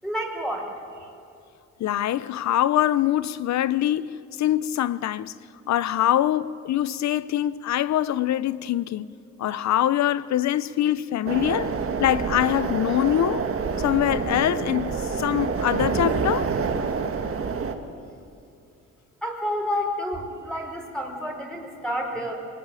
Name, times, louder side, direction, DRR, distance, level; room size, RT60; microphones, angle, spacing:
voice 1, 0.0-1.1 19.2-22.3, equal, ahead, 4.8 m, -30 dB
voice 2, 1.8-4.1 4.4-5.3 5.7-9.1 9.4-11.7 12.0-13.5 13.8-16.5, left 12 dB, 65° left, 0.8 m, -24 dB
sound 1, 11.3-17.7, right 5 dB, 45° right, 1.9 m, -27 dB
22.5 x 20.0 x 9.1 m
cardioid pair, 90°, 30 cm